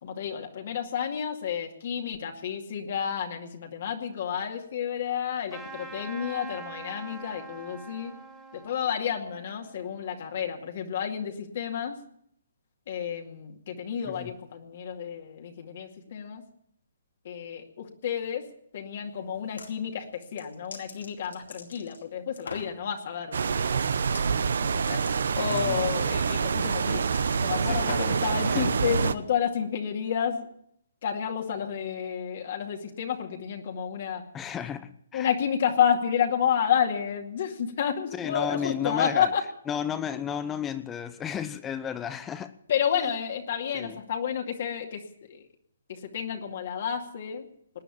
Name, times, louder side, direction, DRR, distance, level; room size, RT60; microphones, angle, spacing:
voice 1, 0.0-8.1 8.5-12.0 12.9-16.4 17.2-18.5 18.7-23.8 24.6-25.0 25.4-27.0 27.4-30.5 31.0-34.2 35.1-39.4 42.7-45.4 45.9-47.5, left 8 dB, 55° left, 2.3 m, -30 dB
Trumpet, 5.5-10.5, right 3 dB, 10° right, 2.5 m, -44 dB
sound 1, 19.3-19.7 20.2-22.0 22.4-22.7 24.0-24.3 24.5-28.3, left 4 dB, 90° left, 3.6 m, -43 dB
sound 2, 23.3-29.1, right 5 dB, 70° right, 0.9 m, -26 dB
voice 2, 25.5-25.8 27.7-28.2 28.5-28.8 34.3-35.3 38.1-39.3 39.7-42.5 42.9-43.1 43.7-44.0, left 8 dB, 15° left, 0.8 m, -33 dB
19.5 x 10.0 x 7.2 m
hypercardioid pair, 145°, 0 cm